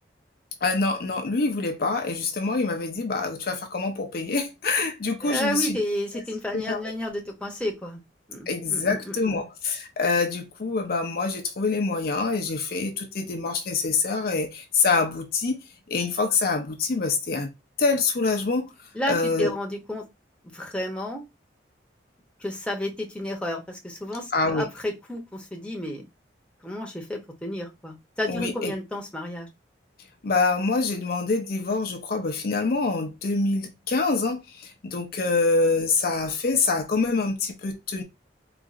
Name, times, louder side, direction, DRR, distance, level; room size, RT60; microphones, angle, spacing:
voice 1, 0.6-5.8 6.5-6.8 8.5-15.6 15.9-17.5 17.8-18.7 19.1-19.5 24.3-24.7 28.3-28.7 30.2-38.0, left 4 dB, 50° left, 0.5 m, -25 dB
voice 2, 5.2-8.0 8.3-9.5 18.9-20.0 20.5-21.2 22.4-26.1 26.6-29.5, left 1 dB, 5° left, 0.8 m, -31 dB
3.9 x 2.5 x 2.4 m
head